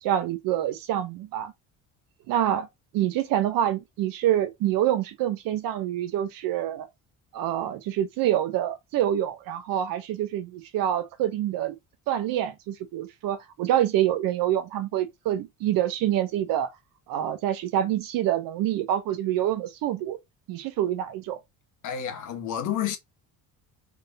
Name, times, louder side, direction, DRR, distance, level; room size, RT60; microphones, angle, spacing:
voice 1, 0.0-1.5 2.3-2.7 2.9-6.9 7.3-11.8 12.1-16.7 17.1-20.2 20.5-21.4, right 11 dB, 70° right, 1.0 m, -26 dB
voice 2, 21.8-23.0, left 9 dB, 55° left, 1.5 m, -30 dB
3.7 x 3.5 x 4.0 m
cardioid pair, 130°, 35 cm